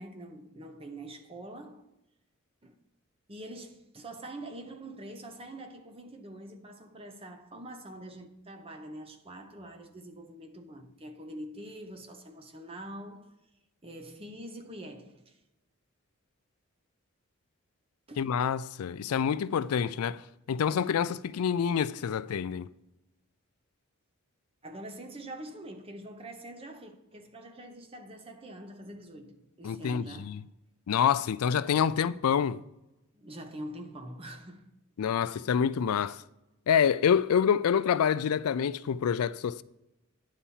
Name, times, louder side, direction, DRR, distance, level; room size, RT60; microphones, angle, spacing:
voice 1, 0.0-1.9 2.6-2.8 3.3-13.3 13.8-15.4 18.1-18.3 24.6-30.3 33.1-34.7 35.2-35.4, right 1 dB, 25° right, 0.9 m, -45 dB
voice 2, 18.2-20.2 20.5-22.7 29.6-30.4 30.9-32.6 35.0-36.2 36.7-39.6, left 7 dB, 90° left, 0.4 m, -27 dB
9.9 x 4.2 x 7.2 m
head